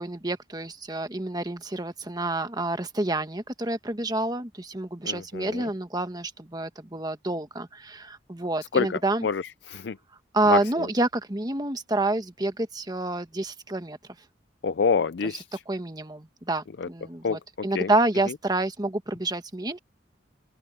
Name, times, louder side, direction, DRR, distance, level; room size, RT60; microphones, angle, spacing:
voice 1, 0.0-9.3 10.3-14.0 15.2-15.3 15.7-19.8, right 2 dB, 20° right, 1.3 m, -28 dB
voice 2, 5.1-5.6 8.7-10.0 10.5-10.9 14.6-15.5 16.8-16.9 17.2-17.4 17.7-17.9, left 5 dB, 65° left, 0.4 m, -27 dB
open air
head